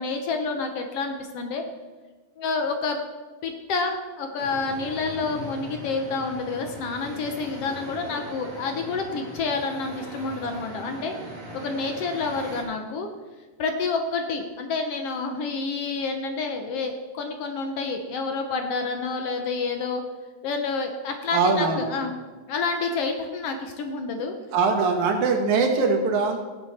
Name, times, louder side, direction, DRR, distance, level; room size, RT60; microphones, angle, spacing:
voice 1, 0.0-1.6 2.4-3.0 3.4-11.2 11.5-13.1 13.6-20.0 20.4-22.1 22.5-24.3, left 4 dB, 65° left, 5 dB, 1.7 m, -28 dB
sound 1, 4.4-12.6, equal, 25° right, 3.2 m, -40 dB
voice 2, 21.3-21.9 24.5-26.4, right 4 dB, 80° right, 3 dB, 2.8 m, -22 dB
17.0 x 7.7 x 4.2 m, 1.3 s
omnidirectional pair, 3.3 m